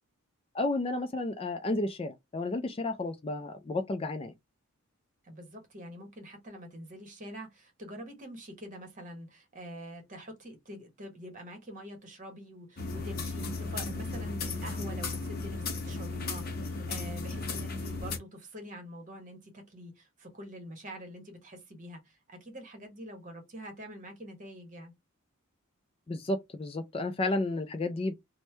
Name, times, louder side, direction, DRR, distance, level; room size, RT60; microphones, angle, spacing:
voice 1, 0.5-4.3 26.1-28.1, left 2 dB, 25° left, 0.3 m, -32 dB
voice 2, 5.2-24.9, equal, 35° right, 1.0 m, -45 dB
sound 1, 12.8-18.2, left 3 dB, 45° left, 0.7 m, -35 dB
3.1 x 2.1 x 3.2 m
head